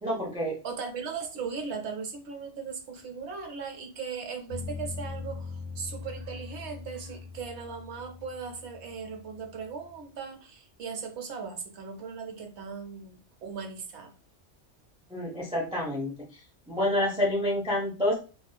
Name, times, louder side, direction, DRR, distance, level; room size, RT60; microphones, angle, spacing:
voice 1, 0.0-0.6 15.1-16.1 16.7-18.2, left 1 dB, 5° right, 0.6 m, -28 dB
voice 2, 0.6-14.1, right 5 dB, 70° right, 0.9 m, -38 dB
sound 1, 4.5-10.0, left 4 dB, 10° left, 1.3 m, -41 dB
2.6 x 2.3 x 2.3 m
omnidirectional pair, 1.3 m